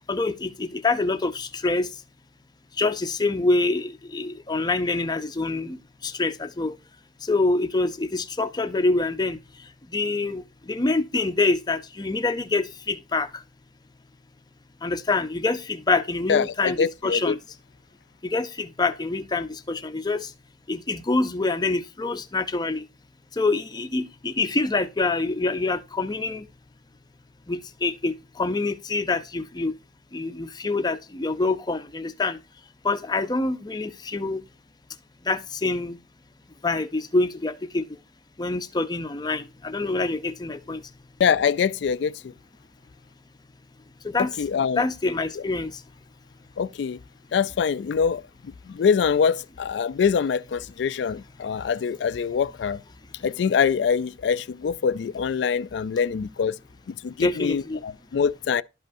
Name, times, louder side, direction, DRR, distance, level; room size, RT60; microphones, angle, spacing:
voice 1, 0.1-1.9 2.8-5.8 6.0-6.7 7.3-9.4 9.9-10.4 10.7-13.3 14.8-17.4 18.2-20.2 20.7-22.8 23.4-26.4 27.5-29.7 30.1-32.4 32.8-34.4 35.3-36.0 36.6-37.8 38.4-40.8 44.0-44.3 44.8-45.7 57.2-57.8, left 3 dB, 20° left, 0.6 m, -25 dB
voice 2, 16.3-17.4 41.2-42.3 44.4-44.8 45.4-45.5 46.6-47.0 47.3-52.8 53.2-56.6 56.9-58.6, left 6 dB, 65° left, 0.3 m, -24 dB
12.0 x 5.3 x 2.6 m
head